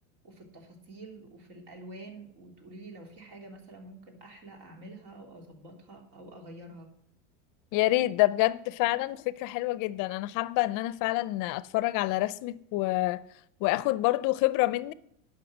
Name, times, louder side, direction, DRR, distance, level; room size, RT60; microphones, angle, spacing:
voice 1, 0.2-6.9, right 2 dB, 55° right, 3.3 m, -47 dB
voice 2, 7.7-13.2 13.6-14.9, left 18 dB, 50° left, 0.6 m, -27 dB
11.0 x 5.8 x 7.3 m
supercardioid pair, 105°, 40 cm